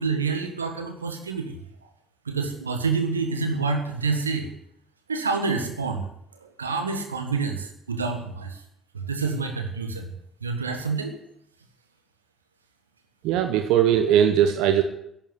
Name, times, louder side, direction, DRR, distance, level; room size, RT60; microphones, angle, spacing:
voice 1, 0.0-1.6 2.2-4.5 5.1-6.0 6.4-8.6 8.9-10.1 10.4-11.2, right 4 dB, 85° right, 6 dB, 1.4 m, -27 dB
voice 2, 13.2-14.8, right 10 dB, 65° right, 7 dB, 0.9 m, -19 dB
11.5 x 8.9 x 9.6 m, 0.75 s
figure-of-eight pair, 50°, 0 cm